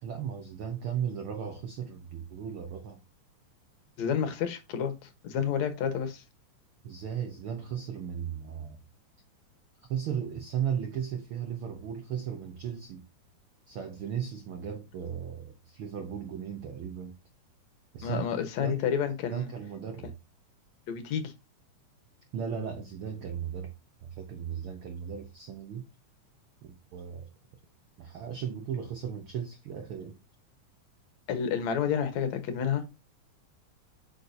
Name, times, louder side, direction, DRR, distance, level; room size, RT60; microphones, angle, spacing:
voice 1, 0.0-3.0 6.8-8.8 9.9-13.0 13.7-17.1 17.9-18.8 19.3-20.2 22.3-23.7 24.0-25.9 26.6-27.3 28.0-30.2, right 8 dB, 90° right, 1.1 m, -36 dB
voice 2, 4.0-6.2 18.0-19.5 20.9-21.3 31.3-32.8, left 7 dB, 65° left, 2.3 m, -30 dB
8.5 x 5.5 x 2.7 m
omnidirectional pair, 3.6 m